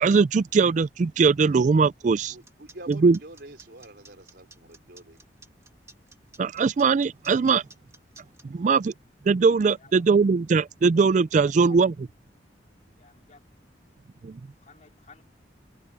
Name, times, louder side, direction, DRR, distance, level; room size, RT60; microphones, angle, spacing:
voice 1, 0.0-2.3 3.0-3.2 6.4-7.6 8.4-8.9 9.3-11.9 14.2-14.4, right 4 dB, 45° right, 0.3 m, -20 dB
sound 1, 2.2-8.4, right 3 dB, 15° right, 2.1 m, -52 dB
voice 2, 2.3-5.2, right 1 dB, 60° right, 4.5 m, -46 dB
voice 3, 11.4-11.8 13.0-13.4 14.6-15.2, left 4 dB, 40° left, 3.5 m, -54 dB
head